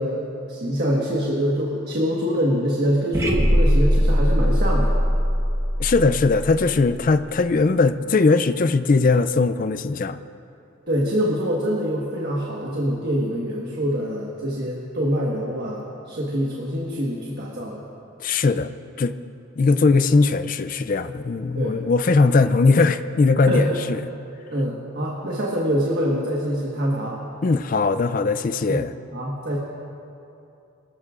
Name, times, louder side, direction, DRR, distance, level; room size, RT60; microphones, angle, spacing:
voice 1, 0.0-5.0 10.9-17.8 21.6-21.8 22.2-22.3 23.5-23.8 24.5-27.2 28.7-28.9 29.1-29.6, equal, 50° right, -3 dB, 1.4 m, -25 dB
sound 1, 3.1-7.2, equal, 15° right, 1.1 m, -20 dB
voice 2, 5.8-10.2 18.2-18.7 19.0-19.1 19.6-24.0 27.4-28.9, left 3 dB, 40° left, 11 dB, 0.4 m, -19 dB
23.5 x 13.5 x 2.5 m, 2.7 s
head